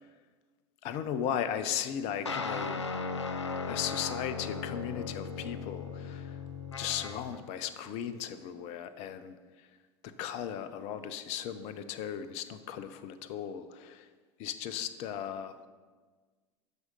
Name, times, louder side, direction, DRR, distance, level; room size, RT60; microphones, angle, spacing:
voice 1, 0.8-2.8 3.7-6.4 6.8-9.4 10.0-14.1 14.4-15.5, left 9 dB, 50° left, 12 dB, 0.7 m, -36 dB
sound 1, 2.3-7.4, left 4 dB, 85° left, 0.6 m, -37 dB
9.4 x 6.3 x 5.0 m, 1.4 s
figure-of-eight pair, 80°, 14 cm